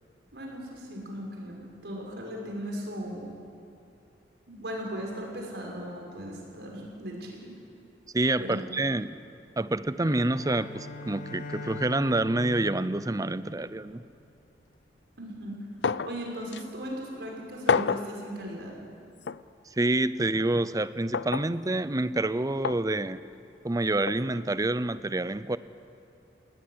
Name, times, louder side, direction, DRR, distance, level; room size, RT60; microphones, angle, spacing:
voice 1, 0.3-3.2 4.5-7.5 8.4-8.6 15.2-15.6 16.1-18.8, equal, 75° right, 0 dB, 6.0 m, -37 dB
voice 2, 8.1-9.2 9.6-14.0 19.8-23.2 23.6-25.6, right 2 dB, 20° right, 15 dB, 0.6 m, -27 dB
Bowed string instrument, 10.0-14.2, left 2 dB, 55° left, 1.7 m, -42 dB
sound 1, 15.8-16.2 16.5-16.6 17.7-18.1 19.3-19.4 21.1-21.5 22.6-22.8 24.1-24.2, left 5 dB, 75° left, 0.5 m, -27 dB
19.5 x 19.0 x 9.6 m, 2.6 s
head